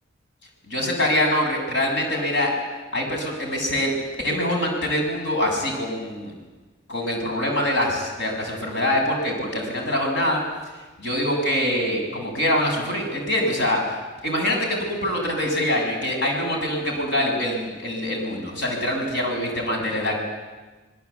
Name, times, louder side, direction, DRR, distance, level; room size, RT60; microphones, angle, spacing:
voice 1, 0.7-2.5 2.9-3.9 4.2-6.3 6.9-10.4 11.0-20.2, left 1 dB, 65° left, 1 dB, 7.2 m, -24 dB
27.0 x 21.5 x 8.4 m, 1.3 s
head